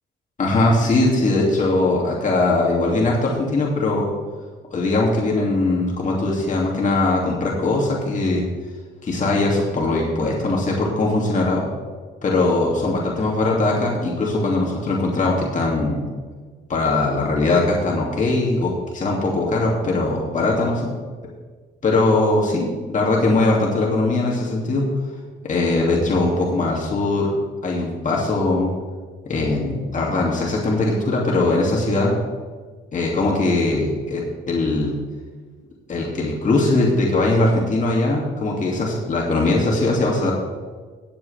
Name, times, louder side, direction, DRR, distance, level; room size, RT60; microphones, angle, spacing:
voice 1, 0.4-4.1 4.7-8.4 9.0-11.6 12.2-16.0 16.7-20.9 21.8-22.7 22.9-24.8 25.4-27.3 27.6-28.7 29.3-32.1 32.9-34.9 35.9-40.3, left 2 dB, 40° left, -3 dB, 2.6 m, -20 dB
18.5 x 7.8 x 3.5 m, 1.5 s
cardioid pair, 90°, 20 cm